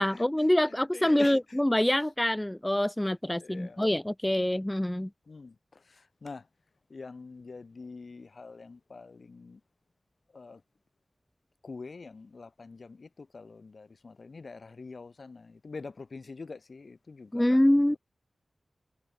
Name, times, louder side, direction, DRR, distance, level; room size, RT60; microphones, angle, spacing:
voice 1, 0.0-5.1 17.3-18.0, left 1 dB, 10° left, 0.9 m, -25 dB
voice 2, 0.6-1.6 3.4-3.9 5.3-6.5 6.9-9.6 10.3-10.6 11.6-17.5 17.7-18.0, left 4 dB, 65° left, 7.8 m, -45 dB
wide cardioid pair, 60°, 0 cm